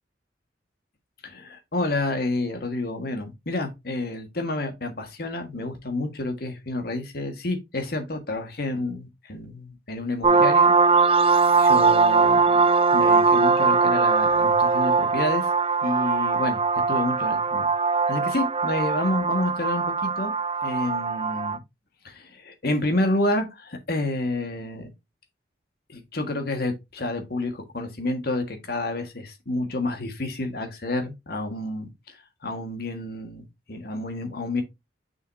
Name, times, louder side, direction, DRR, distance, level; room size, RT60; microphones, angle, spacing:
voice 1, 1.2-10.7 11.6-15.5 15.8-16.6 16.9-17.7 18.1-20.3 20.6-21.6 22.0-24.9 25.9-32.2 32.4-34.6, left 2 dB, 60° left, 1.6 m, -29 dB
sound 1, 10.2-21.6, right 4 dB, 35° right, 0.4 m, -21 dB
6.4 x 5.8 x 2.7 m
head